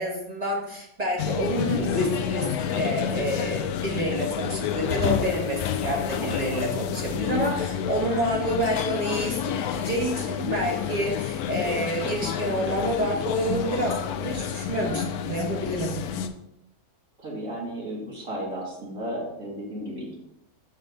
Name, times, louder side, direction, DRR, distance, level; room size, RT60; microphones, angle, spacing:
voice 1, 0.0-15.9, equal, 25° right, -2 dB, 1.5 m, -28 dB
sound 1, 1.2-16.3, left 9 dB, 80° left, 1.1 m, -29 dB
voice 2, 17.2-20.1, right 1 dB, 60° right, -4 dB, 2.6 m, -34 dB
6.8 x 5.5 x 3.9 m, 0.81 s
omnidirectional pair, 1.6 m